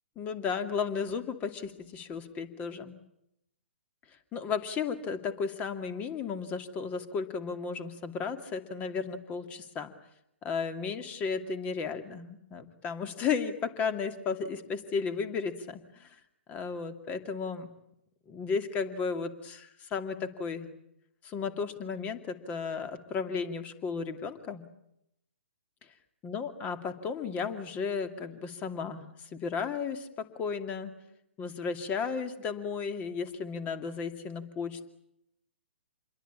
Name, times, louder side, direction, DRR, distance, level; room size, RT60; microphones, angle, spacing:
voice 1, 0.2-3.0 4.3-9.9 10.4-16.1 16.5-17.7 18.3-20.7 21.2-24.6 26.2-30.9 31.4-34.8, left 5 dB, 20° left, 9 dB, 2.5 m, -34 dB
28.0 x 22.5 x 8.7 m, 0.80 s
figure-of-eight pair, 125°, 7 cm